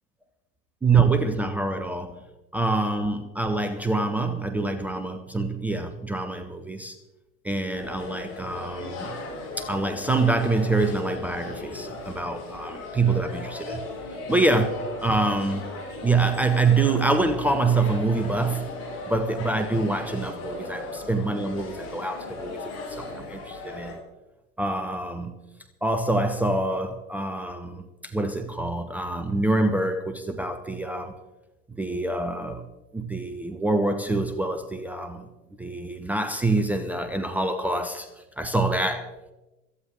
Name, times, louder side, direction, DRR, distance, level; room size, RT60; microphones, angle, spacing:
voice 1, 0.8-2.2 2.5-7.0 7.4-9.2 9.6-13.9 14.3-14.7 15.0-15.8 16.0-18.8 19.1-22.6 22.9-24.0 24.6-25.4 25.8-31.2 31.7-32.7 32.9-35.3 35.6-39.2, right 3 dB, 5° right, 0.3 m, -26 dB
sound 1, 7.7-23.9, left 2 dB, 35° left, 5.8 m, -37 dB
17.5 x 14.0 x 3.6 m
figure-of-eight pair, 90°, 43 cm